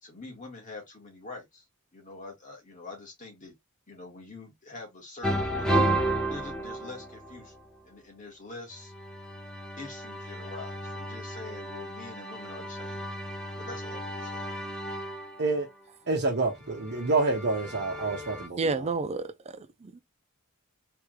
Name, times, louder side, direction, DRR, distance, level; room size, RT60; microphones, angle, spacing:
voice 1, 0.0-1.7 1.9-3.5 3.9-5.8 6.3-7.5 7.8-8.9 9.8-13.0 13.3-14.4, left 3 dB, 35° left, 1.7 m, -45 dB
sound 1, 5.2-7.6 8.8-15.5 16.5-18.5, right 1 dB, 5° left, 1.0 m, -33 dB
voice 2, 16.1-18.9, right 3 dB, 50° right, 1.1 m, -28 dB
voice 3, 18.6-20.0, right 4 dB, 30° right, 0.4 m, -31 dB
3.5 x 3.3 x 3.1 m
head